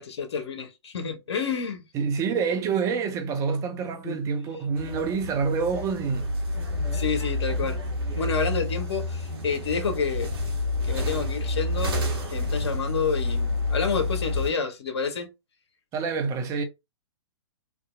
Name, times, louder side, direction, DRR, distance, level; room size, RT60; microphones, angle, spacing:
voice 1, 0.0-1.8 4.0-4.2 6.9-7.8 8.2-10.3 10.8-15.3, left 5 dB, 65° left, 0.7 m, -29 dB
voice 2, 1.9-6.3 15.9-16.6, right 5 dB, 20° right, 0.5 m, -27 dB
sound 1, 4.7-14.5, left 2 dB, 55° right, 1.0 m, -29 dB
2.7 x 2.4 x 2.3 m
figure-of-eight pair, 115°, 15 cm